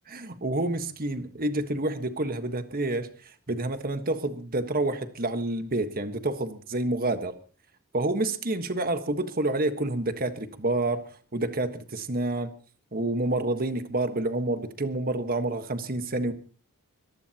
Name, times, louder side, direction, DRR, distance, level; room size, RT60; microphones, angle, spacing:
voice 1, 0.1-7.3 7.9-12.5 12.9-16.3, right 2 dB, 40° right, 9 dB, 1.5 m, -28 dB
24.0 x 18.0 x 3.0 m, 0.38 s
head